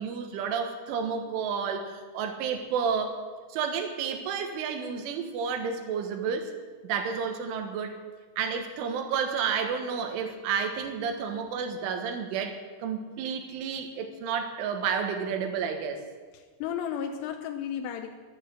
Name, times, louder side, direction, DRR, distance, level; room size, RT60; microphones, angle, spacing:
voice 1, 0.0-3.2 3.5-6.5 6.8-8.0 8.4-16.1, right 6 dB, 85° right, 6 dB, 3.8 m, -31 dB
voice 2, 16.3-18.2, left 8 dB, 80° left, 4 dB, 2.6 m, -34 dB
12.5 x 12.0 x 7.6 m, 1.4 s
omnidirectional pair, 5.5 m